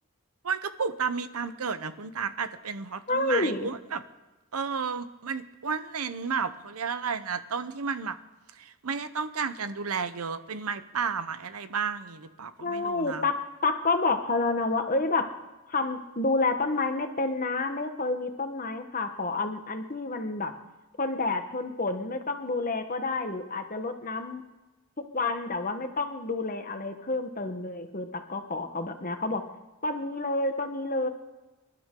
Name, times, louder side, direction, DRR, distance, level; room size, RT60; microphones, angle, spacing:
voice 1, 0.4-4.0 4.5-8.2 8.5-13.3, right 5 dB, 90° right, 12 dB, 0.9 m, -32 dB
voice 2, 3.1-3.7 12.6-15.3 15.7-20.5 21.0-24.4 25.0-29.4 29.8-31.1, left 3 dB, 40° left, 7 dB, 1.2 m, -29 dB
26.5 x 12.0 x 3.8 m, 1.2 s
head